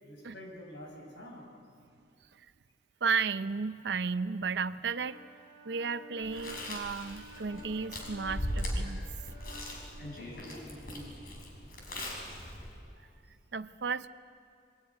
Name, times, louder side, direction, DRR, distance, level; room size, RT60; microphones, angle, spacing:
voice 1, 0.0-1.5 10.3-11.2 13.0-13.1, equal, 90° left, 1 dB, 6.6 m, -47 dB
voice 2, 3.0-5.2 5.6-9.0 13.5-14.1, right 5 dB, 70° right, 13 dB, 0.6 m, -33 dB
Wind instrument woodwind instrument, 4.8-10.0, left 1 dB, 65° left, 3.8 m, -53 dB
Chewing mastication, 6.2-12.8, equal, 50° left, 5.3 m, -39 dB
24.0 x 21.0 x 9.5 m, 2.4 s
head